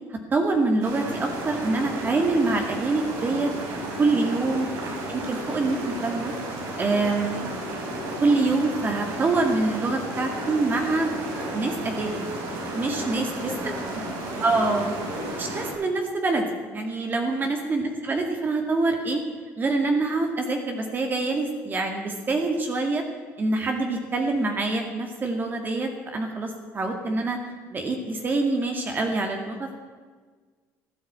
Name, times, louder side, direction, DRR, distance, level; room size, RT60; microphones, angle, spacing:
voice 1, 0.1-3.5 4.0-4.7 5.1-6.3 6.8-7.4 8.2-11.1 11.5-12.2 12.7-13.5 14.4-14.9 15.4-16.5 16.7-19.2 19.6-23.0 23.4-27.4 27.7-29.8, right 3 dB, 30° right, 3 dB, 2.1 m, -25 dB
sound 1, 0.8-15.7, right 1 dB, 70° right, 5.0 m, -33 dB
voice 2, 12.8-14.6 17.0-17.4, left 2 dB, 20° left, 1 dB, 3.3 m, -40 dB
15.0 x 10.0 x 8.7 m, 1.5 s
cardioid pair, 110°, 7 cm